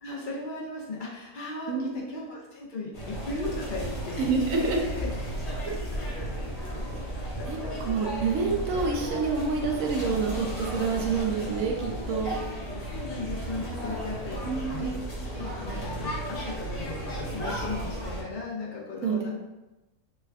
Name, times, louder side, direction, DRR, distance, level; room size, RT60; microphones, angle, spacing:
voice 1, 0.0-4.3 4.6-5.1 5.4-5.7 7.4-7.7 12.9-14.9 15.3-19.3, left 2 dB, 75° left, -4 dB, 0.4 m, -37 dB
voice 2, 1.7-2.1 4.2-4.8 7.5-7.6 7.9-12.4 14.5-15.0 19.0-19.3, right 4 dB, 70° right, 0 dB, 0.9 m, -28 dB
sound 1, 2.9-18.2, right 1 dB, 35° left, 0.6 m, -34 dB
3.3 x 2.2 x 3.4 m, 1.0 s
omnidirectional pair, 1.6 m